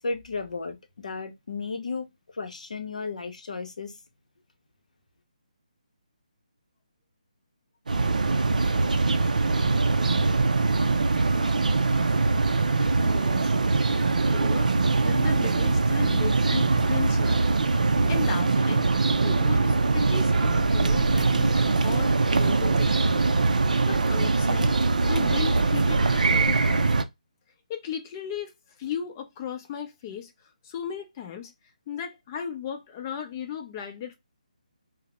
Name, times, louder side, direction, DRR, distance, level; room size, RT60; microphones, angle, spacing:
voice 1, 0.0-2.1 2.3-3.9, left 4 dB, 60° left, 0.7 m, -34 dB
sound 1, 7.9-27.0, right 3 dB, 70° right, 0.4 m, -22 dB
voice 2, 13.0-13.5 14.3-14.7 15.0-17.5 18.1-21.5 21.8-23.3 23.6-24.8 25.0-26.9 27.7-28.5 28.8-30.3 30.6-31.5 31.9-34.2, left 8 dB, 25° left, 0.5 m, -36 dB
2.7 x 2.0 x 3.1 m
figure-of-eight pair, 150°, 4 cm